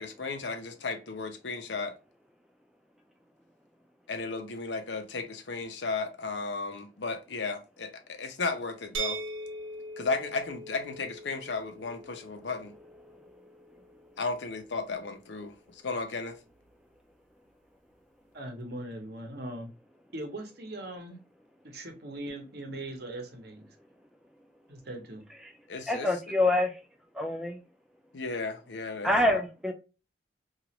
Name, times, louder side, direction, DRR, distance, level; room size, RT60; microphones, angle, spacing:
voice 1, 0.0-2.0 4.1-9.2 10.0-12.7 14.2-16.4 25.7-26.1 28.1-29.4, left 4 dB, 80° left, 0.6 m, -34 dB
sound 1, 8.9-14.7, right 3 dB, 90° right, 0.6 m, -41 dB
voice 2, 18.3-19.7 20.1-21.2 21.6-23.7 24.7-25.3, right 1 dB, 60° right, 0.9 m, -40 dB
voice 3, 25.9-26.8 27.1-27.6 29.0-29.7, left 1 dB, 5° right, 0.4 m, -26 dB
3.0 x 2.4 x 2.8 m
head